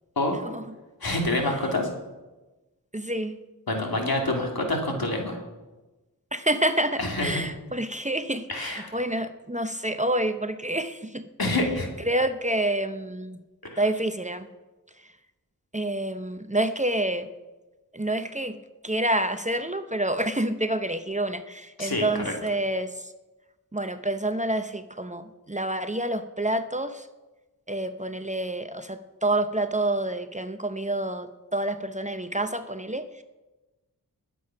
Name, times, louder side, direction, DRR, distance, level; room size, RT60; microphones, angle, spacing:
voice 1, 1.0-1.9 3.7-5.4 7.0-7.4 8.5-8.9 11.4-11.9 13.6-13.8 21.8-22.3, left 2 dB, 70° left, 2 dB, 2.5 m, -27 dB
voice 2, 2.9-3.4 6.3-11.2 12.0-13.4 13.8-14.5 15.7-17.3 17.9-18.6 18.8-23.1 23.7-27.1 27.7-33.2, right 1 dB, 20° right, 9 dB, 0.7 m, -28 dB
20.5 x 7.7 x 5.7 m, 1.1 s
wide cardioid pair, 60°, 37 cm